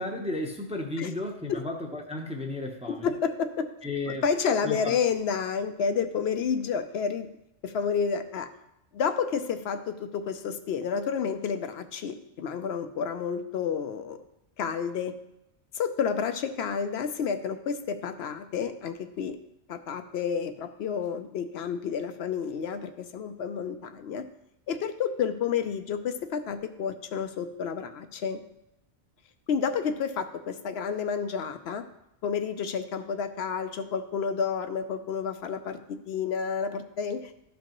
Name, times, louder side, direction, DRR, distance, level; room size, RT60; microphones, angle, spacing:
voice 1, 0.0-3.1 3.8-4.2 4.6-5.0, left 2 dB, 5° right, 2 dB, 0.6 m, -33 dB
voice 2, 2.9-3.7 4.2-7.3 7.6-8.5 8.9-14.2 14.6-15.1 15.7-19.4 19.7-24.2 24.7-28.4 29.5-31.8 32.2-37.3, left 6 dB, 75° left, 9 dB, 0.8 m, -30 dB
12.5 x 5.2 x 3.0 m, 0.85 s
omnidirectional pair, 1.1 m